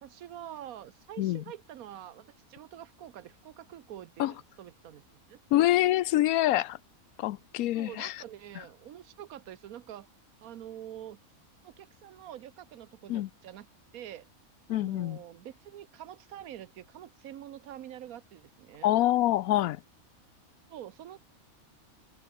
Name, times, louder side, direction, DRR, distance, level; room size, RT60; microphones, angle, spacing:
voice 1, 0.0-5.4 7.5-10.1 10.4-11.2 11.6-13.7 13.9-14.3 14.7-18.9 20.7-21.2, right 11 dB, 80° right, 1.2 m, -46 dB
voice 2, 5.5-6.8 7.2-8.2 13.1-13.3 14.7-15.2 18.8-19.8, left 14 dB, 80° left, 1.0 m, -26 dB
omnidirectional pair, 1.5 m